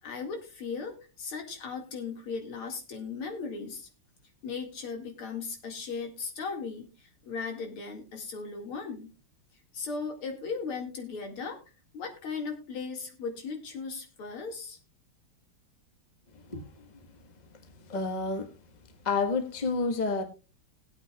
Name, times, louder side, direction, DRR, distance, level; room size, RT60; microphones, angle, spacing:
voice 1, 0.0-3.9 4.4-9.1 9.7-11.6 11.9-14.8, left 5 dB, 85° left, 3.0 m, -37 dB
voice 2, 16.5-16.9 17.9-18.5 19.0-20.2, left 4 dB, 25° left, 1.3 m, -29 dB
19.5 x 8.6 x 2.3 m
omnidirectional pair, 2.3 m